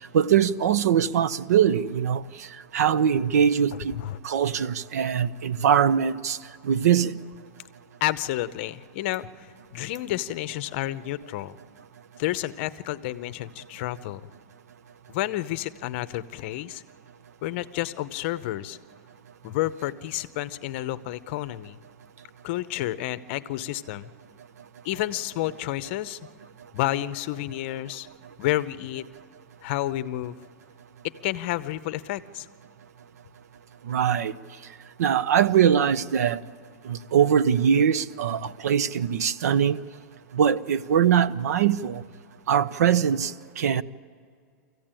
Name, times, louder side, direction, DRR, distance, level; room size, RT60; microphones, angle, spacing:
voice 1, 0.1-2.2 2.7-3.9 4.2-6.4 6.6-7.1 33.9-34.3 35.0-36.4 36.8-39.8 40.3-42.0 42.5-43.8, right 8 dB, 80° right, 0.7 m, -22 dB
voice 2, 8.0-11.6 12.2-14.2 15.1-16.8 17.4-18.8 19.4-21.8 22.4-24.1 24.8-26.2 26.7-28.1 28.4-29.0 29.6-30.4 31.2-32.5, left 15 dB, 45° left, 0.7 m, -30 dB
24.0 x 15.0 x 8.9 m
supercardioid pair, 160°, 8 cm